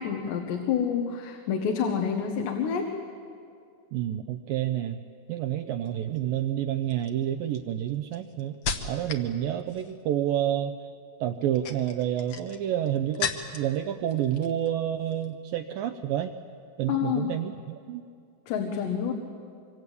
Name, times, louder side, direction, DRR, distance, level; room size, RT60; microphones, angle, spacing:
voice 1, 0.0-2.9 16.9-17.3 18.5-19.1, left 7 dB, 90° left, 3 dB, 3.7 m, -28 dB
voice 2, 3.9-5.0 5.3-8.6 8.8-10.9 11.2-16.3 16.8-18.0, right 11 dB, 80° right, 6 dB, 2.1 m, -29 dB
sound 1, 5.8-6.2 6.9-9.3 9.6-10.1 11.3-13.8 14.1-14.7 15.0-15.3, left 6 dB, 65° left, 1.6 m, -36 dB
25.5 x 25.0 x 8.5 m, 2.4 s
omnidirectional pair, 4.8 m